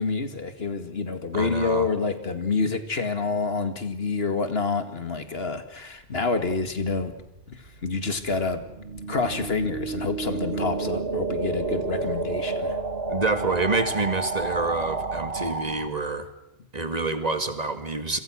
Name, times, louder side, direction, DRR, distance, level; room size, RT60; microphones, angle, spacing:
voice 1, 0.0-7.1 7.5-8.6 9.1-12.8, left 4 dB, 80° left, 9 dB, 2.3 m, -28 dB
voice 2, 1.3-1.9 13.1-16.3 16.7-18.2, right 3 dB, 40° right, 9 dB, 2.1 m, -27 dB
sound 1, 7.3-15.9, right 3 dB, 80° right, 1.8 m, -31 dB
29.0 x 22.5 x 6.4 m, 0.86 s
omnidirectional pair, 1.0 m